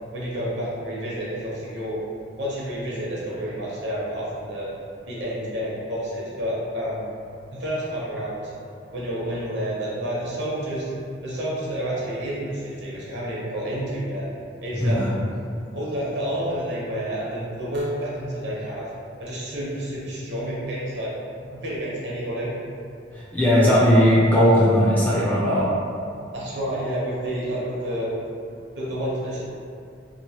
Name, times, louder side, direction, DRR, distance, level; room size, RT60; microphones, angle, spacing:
voice 1, 0.1-2.0 2.4-4.7 5.1-7.1 7.5-8.5 8.9-10.9 11.2-14.2 14.6-15.2 15.7-18.9 19.2-21.1 21.5-22.5 26.3-28.1 28.7-29.4, equal, 65° right, -7 dB, 0.8 m, -29 dB
voice 2, 23.1-25.7, equal, 10° left, -8 dB, 0.4 m, -18 dB
3.0 x 2.5 x 2.8 m, 2.4 s
head